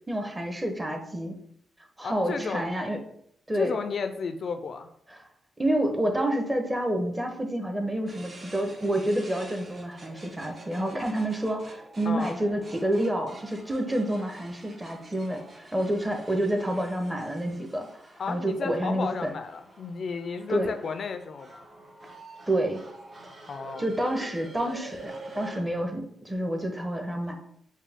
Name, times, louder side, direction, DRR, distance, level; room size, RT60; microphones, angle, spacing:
voice 1, 0.1-1.4 2.0-3.0 3.5-3.8 5.1-5.2 5.6-17.9 18.3-19.3 20.5-20.7 22.5-22.8 23.8-27.3, right 1 dB, 15° right, 4 dB, 0.9 m, -28 dB
voice 2, 2.0-2.6 3.5-4.9 12.1-12.4 18.2-21.7 23.5-23.9, left 5 dB, 60° left, 8 dB, 0.3 m, -33 dB
sound 1, 8.1-25.6, right 2 dB, 50° right, 1.0 m, -48 dB
4.6 x 2.3 x 3.5 m, 0.71 s
supercardioid pair, 50°, 0 cm